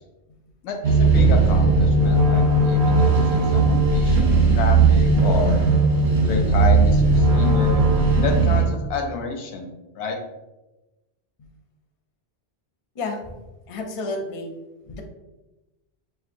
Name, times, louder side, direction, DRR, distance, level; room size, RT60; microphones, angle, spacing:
voice 1, 0.6-5.6 6.2-7.8 8.2-10.2, left 5 dB, 90° left, 4 dB, 0.9 m, -29 dB
sound 1, 0.8-8.6, right 3 dB, 70° right, 1.1 m, -17 dB
voice 2, 13.7-14.5 14.9-15.0, left 2 dB, 45° left, 2 dB, 0.5 m, -30 dB
4.5 x 2.4 x 2.6 m, 1.0 s
omnidirectional pair, 1.1 m